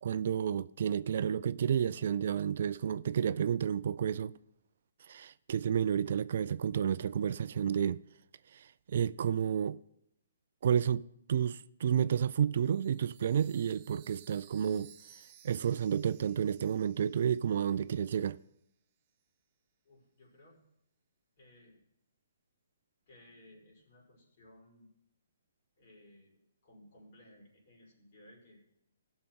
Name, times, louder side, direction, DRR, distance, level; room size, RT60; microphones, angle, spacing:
voice 1, 0.0-4.3 5.1-8.0 8.5-9.8 10.6-14.9 15.4-18.4, right 8 dB, 60° right, 0.4 m, -31 dB
Chime, 12.6-18.1, right 9 dB, 35° right, 1.4 m, -59 dB
voice 2, 19.8-20.6 21.4-21.8 23.1-24.9 25.8-28.6, left 1 dB, 50° left, 5.4 m, -59 dB
17.0 x 6.5 x 4.5 m
hypercardioid pair, 140°, 0 cm